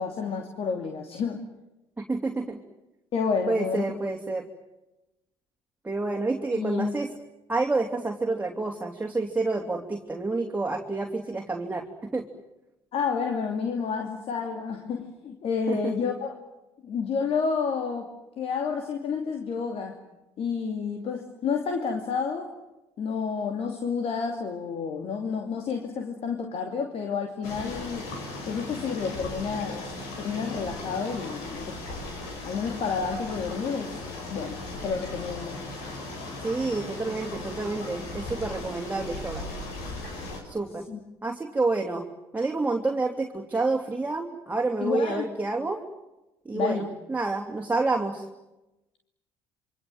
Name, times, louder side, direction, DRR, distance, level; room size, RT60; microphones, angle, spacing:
voice 1, 0.0-1.4 3.1-3.9 6.5-6.9 12.9-16.4 16.8-18.1 18.4-20.0 20.4-22.5 23.0-28.1 28.5-29.9 30.2-31.8 32.4-35.6 40.9-41.0 44.8-45.3 46.5-46.9, left 5 dB, 55° left, 4 dB, 2.9 m, -30 dB
voice 2, 2.0-2.6 3.5-4.4 5.8-7.1 7.5-11.9 12.1-12.2 15.7-15.9 36.4-39.5 40.4-40.8 41.2-42.1 42.3-45.8 46.4-48.3, right 3 dB, 15° right, 1 dB, 3.1 m, -28 dB
sound 1, 27.4-40.4, left 2 dB, 75° left, 6.6 m, -37 dB
27.5 x 24.5 x 7.9 m, 0.98 s
hypercardioid pair, 60°, 12 cm